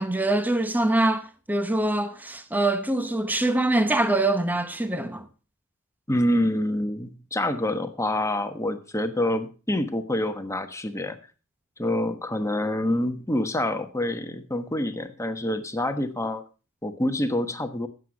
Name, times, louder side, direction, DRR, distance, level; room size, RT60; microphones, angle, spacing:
voice 1, 0.0-5.2, right 2 dB, 10° right, 0.9 m, -24 dB
voice 2, 6.1-11.2 11.8-16.4 16.8-17.9, left 1 dB, 15° left, 1.2 m, -26 dB
16.0 x 8.0 x 5.2 m
head